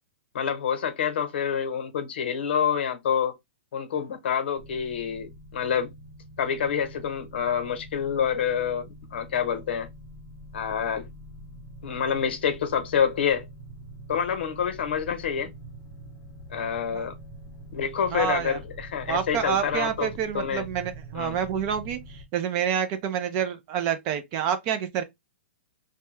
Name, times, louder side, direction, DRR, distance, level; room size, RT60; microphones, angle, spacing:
voice 1, 0.3-3.3 3.7-5.9 6.4-9.9 10.5-11.1 11.8-13.5 14.1-15.5 16.5-17.1 17.7-20.1 20.3-20.6 21.1-21.4, left 7 dB, 65° left, 0.8 m, -27 dB
sound 1, 4.6-22.2, right 1 dB, 15° left, 0.7 m, -45 dB
voice 2, 18.1-18.6 19.1-25.0, right 9 dB, 25° right, 0.3 m, -28 dB
2.6 x 2.2 x 3.0 m
hypercardioid pair, 170°, 6 cm